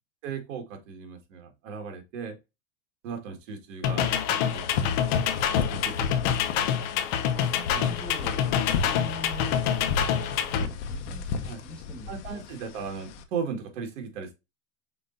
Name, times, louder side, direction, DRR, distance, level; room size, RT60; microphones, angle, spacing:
voice 1, 0.2-2.4 3.0-4.1 4.4-6.7 7.7-8.0 10.6-10.7 11.5-11.6 12.1-14.3, right 6 dB, 75° right, 1.8 m, -37 dB
sound 1, 3.8-10.7, left 9 dB, 40° left, 0.6 m, -26 dB
sound 2, 4.5-13.2, left 5 dB, 65° left, 0.9 m, -34 dB
voice 2, 7.0-9.6 10.2-12.4, left 1 dB, ahead, 1.4 m, -44 dB
5.1 x 4.1 x 2.6 m
supercardioid pair, 175°, 37 cm